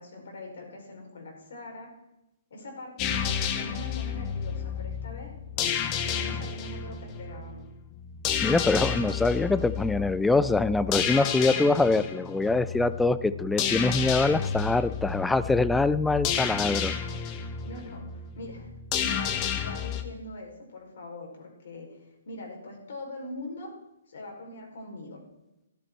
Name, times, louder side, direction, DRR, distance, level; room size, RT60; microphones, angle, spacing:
voice 1, 0.0-1.9 2.5-7.7 17.6-18.7 19.0-22.0 22.2-23.7 24.1-25.2, left 1 dB, 60° left, 1 dB, 4.9 m, -42 dB
sound 1, 3.0-20.0, left 8 dB, 30° left, 1.3 m, -31 dB
voice 2, 8.4-16.9, left 3 dB, 5° left, 15 dB, 0.5 m, -24 dB
13.5 x 12.0 x 4.6 m, 0.93 s
figure-of-eight pair, 130°, 0 cm